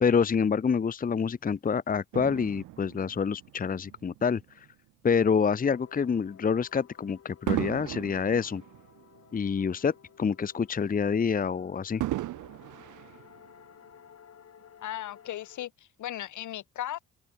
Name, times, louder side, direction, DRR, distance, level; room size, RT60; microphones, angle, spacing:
voice 1, 0.0-4.7 5.0-8.6 9.3-12.0, left 6 dB, 30° left, 0.8 m, -27 dB
Fireworks, 2.1-4.7 5.4-5.6 7.5-10.0 10.3-10.4 12.0-13.9 14.6-14.7, right 16 dB, 85° right, 1.5 m, -37 dB
sound 1, 5.7-15.7, left 8 dB, 55° left, 3.9 m, -56 dB
voice 2, 14.8-17.0, left 12 dB, 75° left, 2.9 m, -37 dB
open air
cardioid pair, 90°, 30 cm